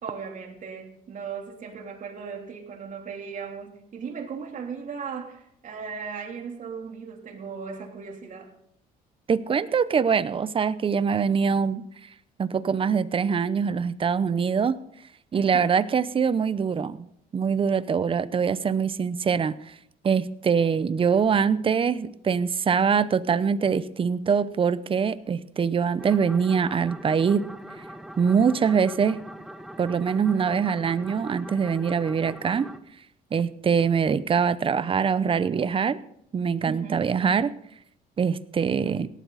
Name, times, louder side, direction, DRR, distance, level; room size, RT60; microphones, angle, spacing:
voice 1, 0.0-8.5 15.3-15.7 36.6-37.1, right 6 dB, 50° right, 2 dB, 3.3 m, -37 dB
voice 2, 9.3-11.8 12.4-14.8 15.3-17.1 17.3-19.7 20.0-27.5 28.2-29.2 29.8-32.7 33.3-36.0 36.3-37.5 38.2-39.1, right 6 dB, 30° right, 15 dB, 0.7 m, -23 dB
sound 1, 26.0-32.8, right 1 dB, ahead, 0.9 m, -42 dB
18.0 x 12.5 x 4.1 m, 0.72 s
cardioid pair, 110°, 17 cm